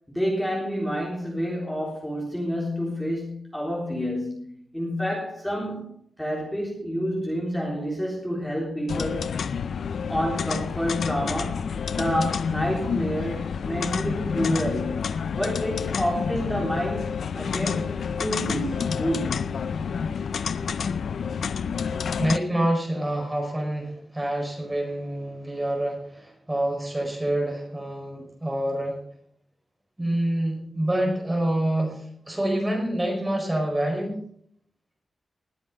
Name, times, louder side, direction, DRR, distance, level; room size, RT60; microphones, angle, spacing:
voice 1, 0.1-9.4 10.1-19.5, equal, 5° left, -3 dB, 3.7 m, -29 dB
sound 1, 8.9-22.4, left 6 dB, 80° left, 0.5 m, -29 dB
voice 2, 22.2-29.0 30.0-34.2, right 1 dB, 15° right, 1 dB, 4.7 m, -27 dB
20.0 x 7.6 x 5.4 m, 0.65 s
wide cardioid pair, 110°, 0 cm